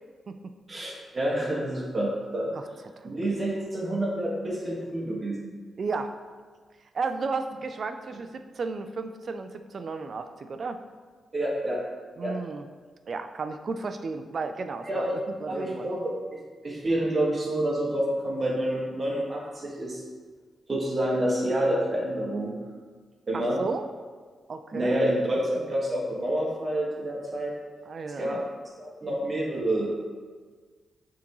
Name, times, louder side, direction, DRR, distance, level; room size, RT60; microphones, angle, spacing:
voice 1, 0.7-2.5 3.0-5.5 11.3-11.8 12.2-12.4 14.8-15.2 15.5-16.1 16.6-20.0 20.7-22.6 23.3-23.6 24.7-27.5 28.2-28.4 28.8-30.0, right 1 dB, 35° right, -3 dB, 1.6 m, -28 dB
voice 2, 5.8-6.1 6.9-10.8 12.2-12.7 13.1-15.9 23.3-23.9 24.5-25.0 27.9-28.4, right 4 dB, 55° right, 8 dB, 0.4 m, -33 dB
8.4 x 3.7 x 3.1 m, 1.5 s
cardioid pair, 75°, 0 cm